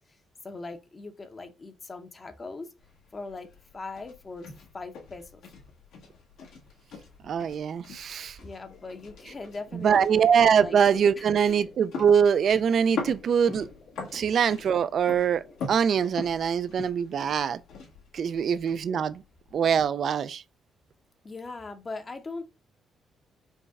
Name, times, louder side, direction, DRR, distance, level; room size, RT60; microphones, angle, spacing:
voice 1, 0.4-2.7 3.1-5.4 8.4-10.8 11.1-11.7 18.4-18.6 21.2-22.5, left 3 dB, 30° left, 0.7 m, -40 dB
sound 1, 2.8-19.8, left 4 dB, 85° left, 1.4 m, -43 dB
voice 2, 7.2-8.4 9.8-13.7 14.1-15.4 15.7-17.6 18.1-19.2 19.5-20.4, right 7 dB, 60° right, 0.3 m, -23 dB
sound 2, 8.7-16.2, left 3 dB, 70° left, 2.0 m, -54 dB
5.3 x 2.2 x 3.5 m
cardioid pair, 90°, 0 cm